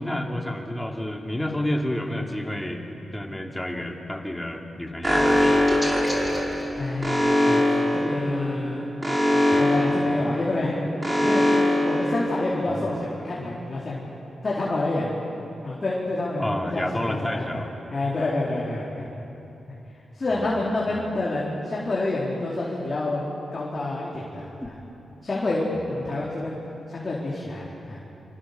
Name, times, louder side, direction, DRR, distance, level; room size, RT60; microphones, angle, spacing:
voice 1, 0.0-2.8 3.1-6.0 9.5-9.7 16.4-17.7 20.3-20.6 20.9-21.1, left 1 dB, 10° left, 2 dB, 2.7 m, -30 dB
Alarm, 5.0-12.8, left 1 dB, 10° right, 4.9 m, -22 dB
voice 2, 6.8-7.6 7.9-8.9 9.6-10.9 11.2-11.4 11.8-14.1 14.4-15.1 15.6-17.6 17.9-19.1 20.1-23.2 23.5-24.7 25.2-26.6 26.9-28.0, left 2 dB, 35° left, -5 dB, 4.3 m, -28 dB
27.5 x 26.5 x 6.9 m, 3.0 s
wide cardioid pair, 105°, 0 cm